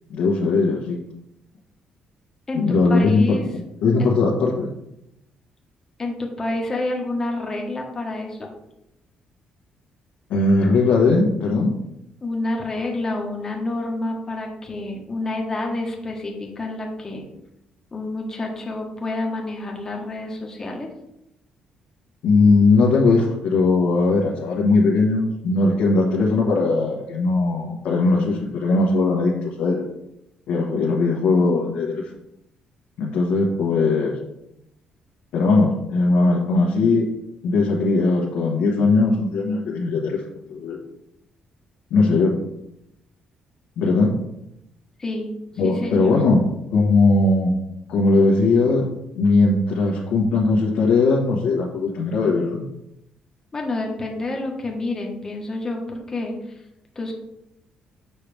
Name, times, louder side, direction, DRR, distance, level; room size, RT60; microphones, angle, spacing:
voice 1, 0.1-1.0 2.5-3.4 3.8-4.7 10.3-11.7 22.2-29.8 30.5-32.0 33.0-34.2 35.3-37.1 37.4-40.2 40.5-40.8 41.9-42.3 43.8-44.1 45.6-46.4 46.7-47.5 47.9-48.9 49.1-52.6, left 3 dB, 80° left, -4 dB, 1.3 m, -19 dB
voice 2, 2.5-3.4 4.0-4.1 6.0-8.5 12.2-17.3 17.9-20.9 45.0-45.3 45.6-46.2 53.5-56.3 56.9-57.1, left 2 dB, 20° left, 0 dB, 1.4 m, -28 dB
7.7 x 5.7 x 3.4 m, 0.83 s
cardioid pair, 150°, 2 cm